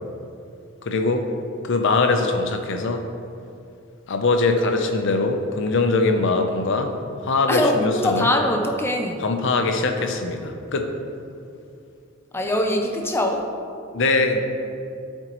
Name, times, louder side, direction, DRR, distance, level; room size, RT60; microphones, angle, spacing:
voice 1, 0.8-1.2 1.6-3.0 4.1-6.9 7.2-8.3 9.2-10.9 13.9-14.4, left 3 dB, 65° left, 5 dB, 0.6 m, -22 dB
voice 2, 7.5-9.2 12.3-13.5, left 1 dB, 10° left, 3 dB, 0.4 m, -22 dB
12.0 x 4.5 x 3.0 m, 2.6 s
head